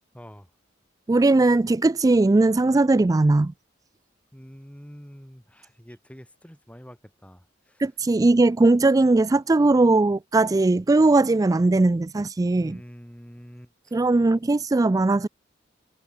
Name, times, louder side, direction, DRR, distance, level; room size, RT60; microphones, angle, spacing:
voice 1, 0.1-0.5 4.3-7.8 12.5-14.0, equal, 5° left, 3.6 m, -46 dB
voice 2, 1.1-3.5 7.8-12.8 13.9-15.3, right 2 dB, 20° right, 0.3 m, -19 dB
head